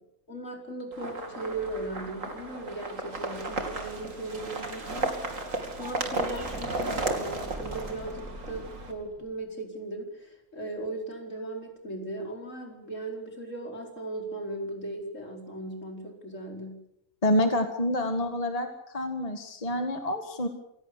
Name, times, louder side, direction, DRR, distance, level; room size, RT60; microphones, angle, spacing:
voice 1, 0.3-5.3 5.8-16.9, right 2 dB, 65° left, 2 dB, 5.1 m, -37 dB
sound 1, 0.9-8.9, right 2 dB, 75° right, 3.1 m, -34 dB
sound 2, 5.6-6.8, right 2 dB, 40° right, 2.9 m, -49 dB
sound 3, 6.2-9.4, equal, ahead, 5.0 m, -44 dB
voice 2, 17.2-18.7 18.9-20.5, left 1 dB, 30° left, 6 dB, 2.0 m, -27 dB
27.0 x 17.5 x 6.9 m, 0.81 s
omnidirectional pair, 1.4 m